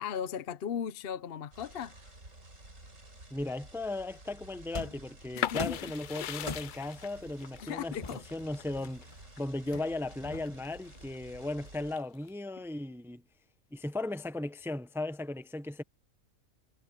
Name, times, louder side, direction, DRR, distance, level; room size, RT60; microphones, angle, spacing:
voice 1, 0.0-2.0 5.3-5.9 7.6-8.2, left 8 dB, 50° left, 0.9 m, -37 dB
sound 1, 1.5-12.0, right 2 dB, 65° right, 5.4 m, -53 dB
voice 2, 3.3-8.0 8.3-13.2 13.7-15.8, left 2 dB, ahead, 0.6 m, -36 dB
sound 2, 4.7-5.1 5.6-5.9 6.5-6.9 8.0-9.1 9.7-10.7, left 2 dB, 25° left, 1.2 m, -41 dB
sound 3, 5.4-11.0 11.4-12.3, left 10 dB, 85° left, 0.4 m, -39 dB
omnidirectional pair, 1.4 m